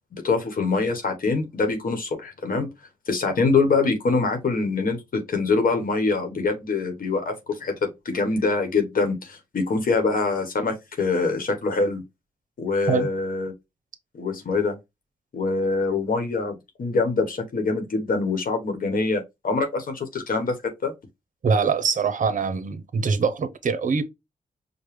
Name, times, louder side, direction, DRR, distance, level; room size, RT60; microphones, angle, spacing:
voice 1, 0.2-2.7 3.1-12.0 12.6-13.5 14.1-14.8 15.3-20.5 20.8-20.9, left 4 dB, 70° left, 1.0 m, -24 dB
voice 2, 21.4-24.0, right 5 dB, 60° right, 0.7 m, -23 dB
5.0 x 2.1 x 3.1 m
cardioid pair, 80°, 15 cm